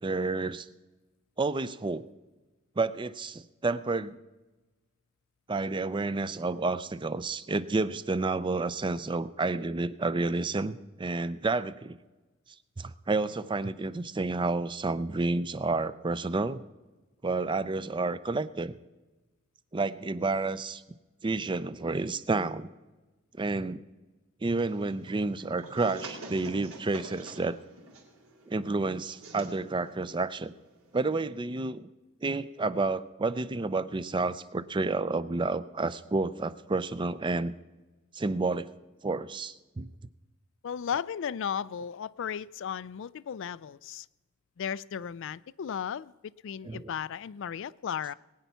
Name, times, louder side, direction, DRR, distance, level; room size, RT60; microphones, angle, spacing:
voice 1, 0.0-0.7 1.4-2.1 2.8-4.2 5.5-12.0 12.8-16.6 17.2-18.8 19.7-20.8 21.2-22.7 23.4-23.8 24.4-27.6 28.5-30.5 30.9-31.9 32.2-37.5 38.1-38.7 39.0-39.9 46.6-46.9, right 3 dB, 25° right, 0.5 m, -30 dB
sound 1, 24.6-31.2, right 2 dB, 85° right, 3.1 m, -47 dB
voice 2, 40.6-44.1 44.6-48.1, left 8 dB, 65° left, 0.4 m, -35 dB
20.5 x 9.2 x 5.6 m
head